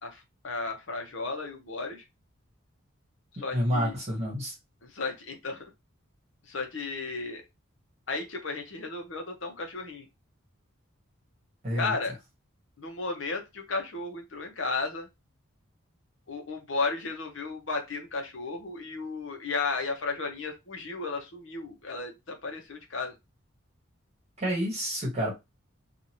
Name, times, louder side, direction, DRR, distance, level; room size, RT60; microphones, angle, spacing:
voice 1, 0.0-2.0 3.4-3.9 4.8-5.6 6.5-7.4 8.1-10.1 11.7-12.2 12.8-15.1 16.3-23.2, left 3 dB, 65° left, 0.8 m, -34 dB
voice 2, 3.5-4.5 11.6-11.9 24.4-25.4, equal, 30° right, 1.1 m, -29 dB
2.7 x 2.5 x 2.9 m
head